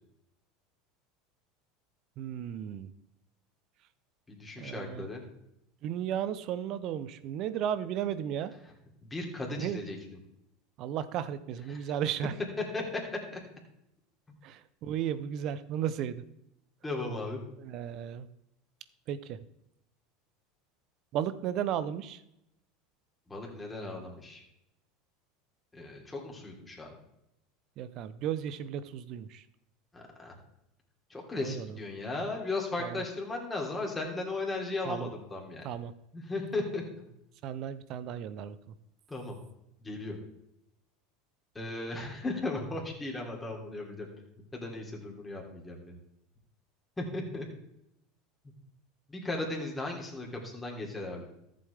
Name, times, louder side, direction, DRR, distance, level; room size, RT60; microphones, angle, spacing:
voice 1, 2.2-2.9 4.6-5.1 5.8-8.5 9.6-9.8 10.8-12.3 14.4-16.2 17.6-18.3 19.1-19.4 21.1-22.2 27.8-29.4 31.4-31.7 32.8-33.0 34.8-35.1 35.6-35.9 37.4-38.6, right 9 dB, 55° right, 14 dB, 0.7 m, -34 dB
voice 2, 4.3-5.2 9.0-10.0 11.7-11.9 12.6-13.4 16.8-17.4 23.3-24.4 25.7-26.9 29.9-30.3 31.1-35.7 36.1-37.1 39.1-39.4 39.8-40.2 41.5-44.1 44.5-46.0 47.0-47.5 49.1-51.3, left 2 dB, 15° left, -1 dB, 3.2 m, -36 dB
14.0 x 7.7 x 3.5 m, 0.82 s
hypercardioid pair, 90°, 0 cm